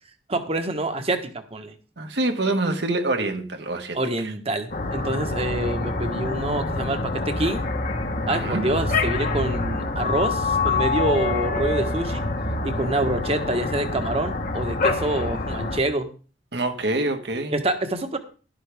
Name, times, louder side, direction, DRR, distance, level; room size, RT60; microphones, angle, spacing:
voice 1, 0.3-1.7 3.9-7.7 8.3-12.2 12.6-16.1 17.5-18.2, right 1 dB, 35° right, 1.3 m, -26 dB
voice 2, 2.0-4.0 8.3-8.7 16.5-17.5, right 2 dB, 75° right, 1.5 m, -25 dB
sound 1, 4.7-15.8, left 3 dB, 50° left, 1.3 m, -26 dB
12.0 x 11.5 x 3.5 m
head